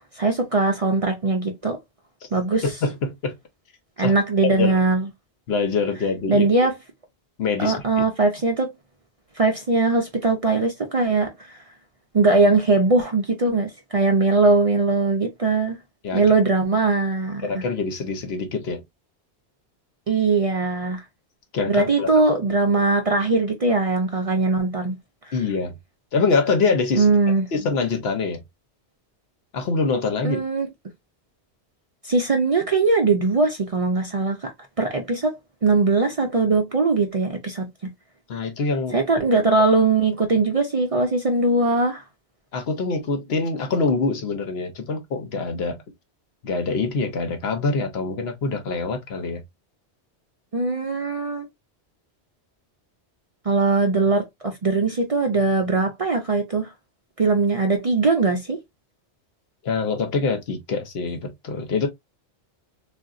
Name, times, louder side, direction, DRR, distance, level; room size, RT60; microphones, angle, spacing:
voice 1, 0.0-1.8 2.3-2.6 4.0-5.1 6.3-6.8 7.6-8.7 9.4-11.3 12.1-15.8 16.1-17.6 20.1-21.0 21.7-25.0 26.9-27.4 30.2-30.7 32.0-34.5 34.8-35.3 35.6-37.9 38.9-42.0 50.5-51.5 53.5-56.7 57.2-58.6, right 3 dB, 45° right, 0.5 m, -20 dB
voice 2, 2.8-3.4 4.0-4.1 4.6-4.8 5.5-6.5 7.4-7.8 16.0-16.2 17.4-18.8 21.5-22.1 25.3-25.8 26.1-27.1 27.5-28.4 29.5-30.4 38.3-39.0 42.5-45.8 46.4-49.4 59.6-61.9, left 4 dB, 70° left, 1.0 m, -24 dB
3.7 x 2.5 x 2.3 m
omnidirectional pair, 1.1 m